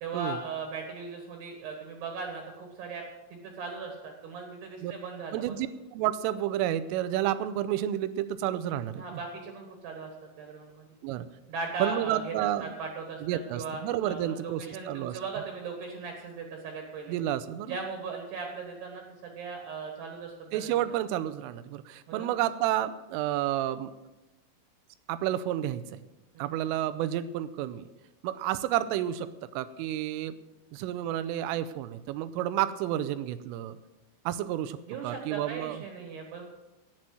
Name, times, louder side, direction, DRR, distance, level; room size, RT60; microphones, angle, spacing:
voice 1, 0.0-3.0 3.3-5.6 8.9-10.1 10.4-10.9 11.5-12.3 12.6-17.2 17.7-20.9 22.1-22.3 26.3-26.7 34.9-36.4, right 4 dB, 65° right, 2 dB, 3.2 m, -38 dB
voice 2, 5.3-9.2 11.0-11.3 11.8-12.7 13.2-15.2 17.1-17.8 20.5-23.9 25.1-26.0 26.4-27.9 28.2-30.4 30.7-33.8 34.3-34.8 35.0-35.8, right 12 dB, 85° right, 14 dB, 3.2 m, -30 dB
10.5 x 9.5 x 7.6 m, 1.0 s
omnidirectional pair, 5.7 m